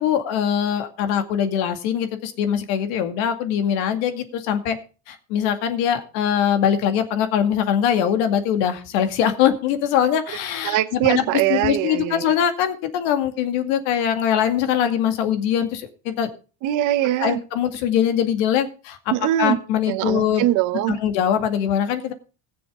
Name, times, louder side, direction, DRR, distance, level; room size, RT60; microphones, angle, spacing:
voice 1, 0.0-4.8 5.1-11.2 11.5-16.3 17.2-19.1 19.4-20.4 20.9-22.1, left 9 dB, 70° left, 8 dB, 2.3 m, -22 dB
voice 2, 10.6-12.3 16.6-17.4 19.1-19.6 19.9-21.0, right 14 dB, 45° right, 9 dB, 1.0 m, -22 dB
19.5 x 7.0 x 3.7 m, 0.34 s
cardioid pair, 155°, 42 cm